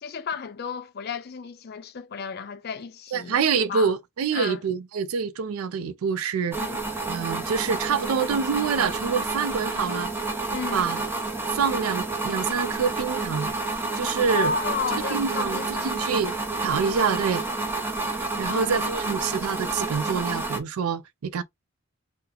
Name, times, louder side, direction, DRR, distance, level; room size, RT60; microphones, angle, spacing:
voice 1, 0.0-3.4 3.7-3.9 4.3-4.6 6.6-6.8 10.5-10.8 14.3-15.9 18.4-18.9, left 5 dB, 50° left, 0.5 m, -32 dB
voice 2, 3.1-6.6 7.1-10.1 10.7-11.0 11.5-13.5 13.9-14.5 15.1-16.3 16.6-17.4 18.4-21.4, right 6 dB, 85° right, 0.4 m, -26 dB
sound 1, 6.5-20.6, right 3 dB, 10° right, 0.6 m, -29 dB
2.8 x 2.1 x 3.8 m
head